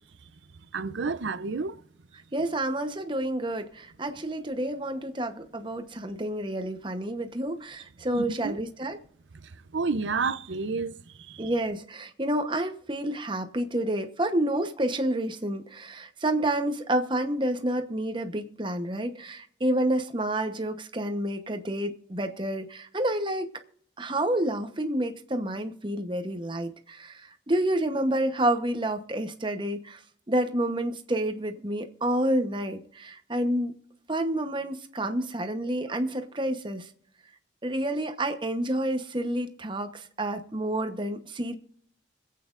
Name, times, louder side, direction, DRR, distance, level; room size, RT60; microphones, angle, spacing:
voice 1, 0.7-1.8 8.1-8.6 9.7-10.9 11.3-11.5, right 4 dB, 85° right, 0.6 m, -30 dB
voice 2, 2.3-9.0 11.4-23.5 24.0-30.0 30.3-33.8 34.1-36.9 37.6-41.6, right 1 dB, 25° right, 1.0 m, -29 dB
25.5 x 8.6 x 2.6 m
head